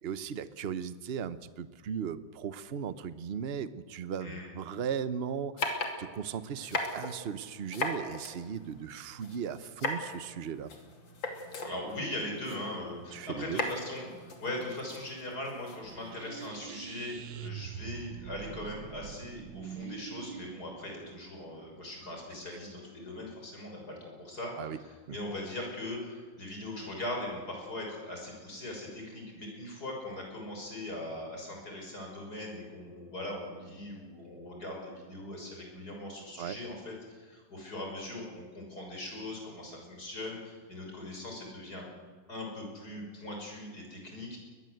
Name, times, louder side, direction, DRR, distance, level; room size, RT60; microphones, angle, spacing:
voice 1, 0.0-10.7 13.1-13.6 24.6-24.8 25.1-25.2 36.4-36.6, right 7 dB, 45° right, 14 dB, 0.8 m, -37 dB
sound 1, 5.6-16.5, left 2 dB, 70° left, 3.4 m, -39 dB
voice 2, 11.6-41.9 42.3-44.4, left 1 dB, 50° left, 0 dB, 6.7 m, -40 dB
sound 2, 15.8-22.6, right 9 dB, 75° right, 1.5 m, -44 dB
22.0 x 20.5 x 8.0 m, 1.5 s
omnidirectional pair, 2.1 m